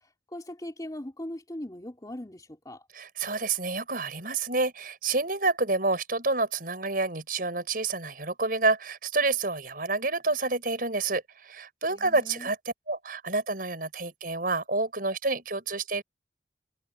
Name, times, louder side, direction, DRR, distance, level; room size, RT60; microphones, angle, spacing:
voice 1, 0.3-2.8 11.9-12.5, left 1 dB, 20° left, 2.8 m, -40 dB
voice 2, 2.9-16.0, right 3 dB, 50° right, 6.5 m, -28 dB
head